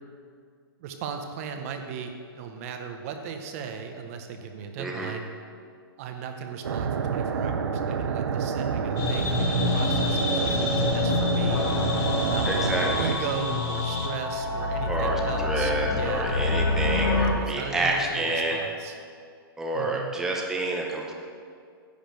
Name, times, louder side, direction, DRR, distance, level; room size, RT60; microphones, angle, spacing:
voice 1, 0.8-5.3 6.0-11.7 12.1-16.4 17.3-19.0 19.7-20.1, right 6 dB, 35° right, 5 dB, 0.8 m, -37 dB
voice 2, 4.8-5.1 12.4-13.1 14.9-18.6 19.6-21.1, right 2 dB, 5° right, -1 dB, 0.7 m, -28 dB
sound 1, 6.6-13.1, right 6 dB, 80° right, 0.8 m, -28 dB
sound 2, 9.0-14.1, left 4 dB, 25° left, 1.1 m, -27 dB
sound 3, 11.5-17.3, left 3 dB, 85° left, 1.3 m, -28 dB
10.5 x 5.0 x 7.7 m, 2.2 s
hypercardioid pair, 155°, 13 cm